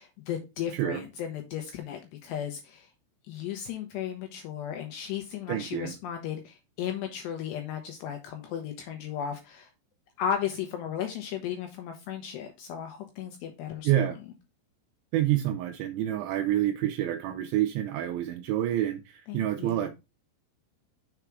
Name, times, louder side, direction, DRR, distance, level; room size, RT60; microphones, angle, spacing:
voice 1, 0.0-2.9 3.3-9.7 10.2-13.9 19.3-19.9, left 9 dB, 80° left, 2.5 m, -35 dB
voice 2, 0.7-1.0 5.5-5.9 13.8-14.2 15.1-19.9, right 12 dB, 85° right, 2.6 m, -28 dB
6.9 x 4.8 x 4.6 m
omnidirectional pair, 6.0 m